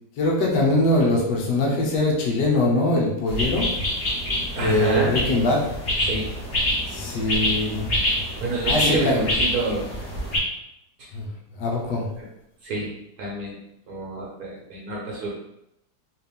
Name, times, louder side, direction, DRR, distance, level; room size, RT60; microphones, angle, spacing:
voice 1, 0.2-3.7 4.6-5.7 6.9-7.9 8.6-9.2 11.1-11.3 11.6-12.1, left 2 dB, 65° left, -3 dB, 1.5 m, -22 dB
sound 1, 3.3-10.4, left 1 dB, 35° left, 1.3 m, -26 dB
voice 2, 4.6-5.2 6.0-6.3 8.4-9.9 11.0-11.1 12.2-12.3 12.6-12.9 13.2-13.6 13.9-15.3, right 2 dB, 60° right, -4 dB, 1.2 m, -27 dB
4.2 x 2.5 x 3.5 m, 0.81 s
omnidirectional pair, 2.0 m